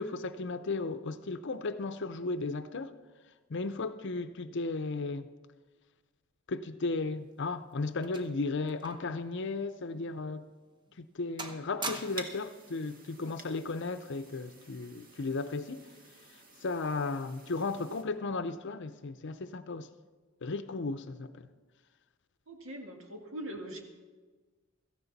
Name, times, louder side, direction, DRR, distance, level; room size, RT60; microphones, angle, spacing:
voice 1, 0.0-2.9 3.5-5.3 6.5-10.5 11.0-15.8 16.6-19.9 20.4-21.5, left 3 dB, 60° left, 0.6 m, -35 dB
sound 1, 7.1-9.2 9.5-9.7 10.3-10.4 10.9-11.1 11.4-12.4 13.4-13.7, right 2 dB, 20° right, 1.0 m, -43 dB
sound 2, 11.9-18.0, right 3 dB, 45° right, 1.6 m, -51 dB
voice 2, 22.5-23.8, right 1 dB, 75° right, 2.0 m, -42 dB
16.5 x 14.5 x 4.1 m
head